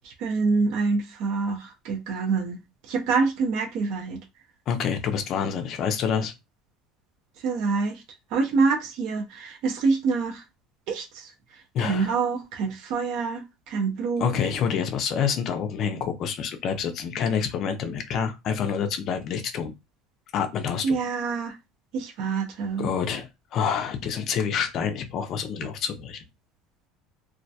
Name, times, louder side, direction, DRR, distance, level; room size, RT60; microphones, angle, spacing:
voice 1, 0.0-2.6 2.9-4.2 7.4-8.0 8.3-10.4 10.9-11.3 11.8-14.3 20.8-21.6 21.9-22.9, right 4 dB, 55° right, 0.5 m, -26 dB
voice 2, 4.7-6.3 11.7-12.1 14.2-19.7 20.3-21.0 22.8-26.2, left 7 dB, 40° left, 0.4 m, -27 dB
2.2 x 2.1 x 2.7 m
cardioid pair, 155°, 0 cm